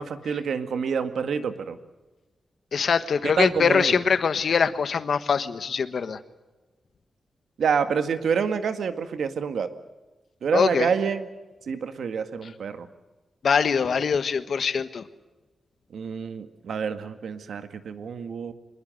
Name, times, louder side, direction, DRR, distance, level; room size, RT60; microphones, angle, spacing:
voice 1, 0.0-1.8 3.4-4.0 7.6-9.7 10.4-11.3 11.7-12.9 15.9-18.5, right 6 dB, 85° right, 9 dB, 1.9 m, -27 dB
voice 2, 2.7-6.2 10.5-10.9 13.4-15.0, left 6 dB, 60° left, 12 dB, 1.3 m, -23 dB
25.0 x 21.5 x 7.9 m, 1.2 s
wide cardioid pair, 165°, 0 cm